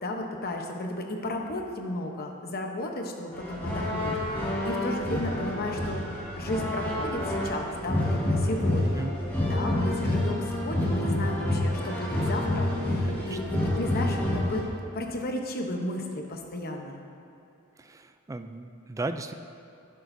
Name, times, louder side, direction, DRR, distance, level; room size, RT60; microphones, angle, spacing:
voice 1, 0.0-6.0 6.3-9.1 9.5-14.6 14.9-17.0, left 1 dB, 45° left, 2 dB, 0.9 m, -33 dB
sound 1, 3.3-14.6, left 1 dB, 10° left, 2.2 m, -28 dB
voice 2, 8.8-9.6 13.1-13.4 17.8-19.3, right 2 dB, 15° right, 8 dB, 0.3 m, -36 dB
11.0 x 10.5 x 2.7 m, 2.6 s
head